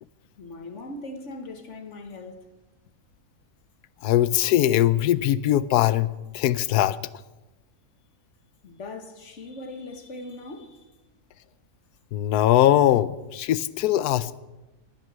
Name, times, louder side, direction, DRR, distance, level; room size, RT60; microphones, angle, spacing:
voice 1, 0.4-2.5 8.6-10.9, left 2 dB, 50° left, 1.6 m, -40 dB
voice 2, 4.0-7.0 12.1-14.4, left 12 dB, 85° left, 1.1 m, -21 dB
18.5 x 6.4 x 7.5 m
omnidirectional pair, 1.6 m